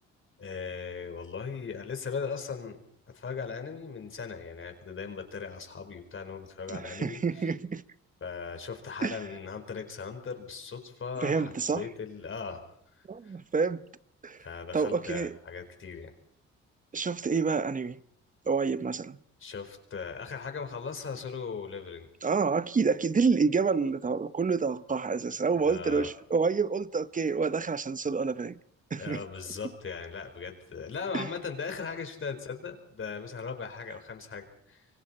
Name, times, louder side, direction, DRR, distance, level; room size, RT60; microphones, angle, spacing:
voice 1, 0.4-2.8 3.1-7.5 8.2-12.6 12.9-13.3 14.4-16.1 19.4-22.1 25.5-26.1 29.0-34.9, left 5 dB, 45° left, 4.5 m, -38 dB
voice 2, 6.7-7.8 9.0-9.2 11.2-11.9 13.1-13.8 14.2-14.5 14.7-15.3 16.9-18.0 18.5-19.2 22.2-28.6 28.9-29.2 31.1-31.3, right 5 dB, 25° right, 0.9 m, -28 dB
27.0 x 24.0 x 4.4 m
cardioid pair, 90°, 30 cm